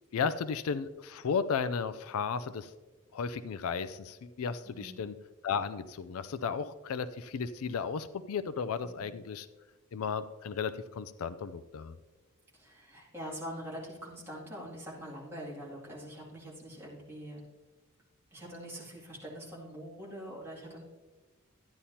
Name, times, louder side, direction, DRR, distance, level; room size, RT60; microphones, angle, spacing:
voice 1, 0.1-2.7 3.1-5.1 5.4-9.5 9.9-12.0, left 6 dB, 75° left, 14 dB, 0.4 m, -34 dB
voice 2, 4.6-5.0 12.5-17.4 18.3-20.8, equal, 10° right, -6 dB, 2.4 m, -44 dB
12.5 x 9.9 x 2.8 m, 1.3 s
head